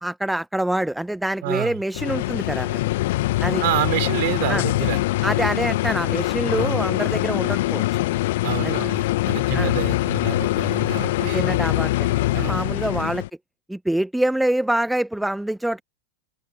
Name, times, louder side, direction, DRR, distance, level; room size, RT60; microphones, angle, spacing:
voice 1, 0.0-2.8 3.4-3.6 4.5-4.6 5.2-7.8 8.6-8.8 9.5-9.7 11.3-13.2 13.7-15.8, right 1 dB, 5° right, 1.4 m, -25 dB
voice 2, 1.4-1.8 3.6-5.0 6.5-6.9 8.4-11.4 12.3-12.7, right 22 dB, 50° right, 5.3 m, -28 dB
sound 1, 1.9-13.3, left 18 dB, 55° left, 1.1 m, -23 dB
open air
figure-of-eight pair, 90°, 0 cm